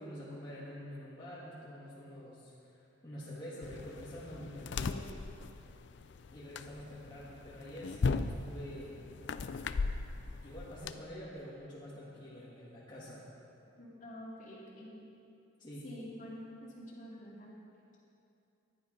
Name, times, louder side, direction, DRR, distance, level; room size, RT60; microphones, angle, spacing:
voice 1, 0.0-5.0 6.3-9.0 10.4-13.3 15.6-15.8, equal, 20° left, -9 dB, 1.7 m, -47 dB
sound 1, 3.6-10.9, left 4 dB, 55° left, 0.4 m, -38 dB
voice 2, 13.7-14.9 15.8-17.5, equal, 35° left, -5 dB, 2.3 m, -47 dB
12.0 x 10.5 x 5.3 m, 2.7 s
head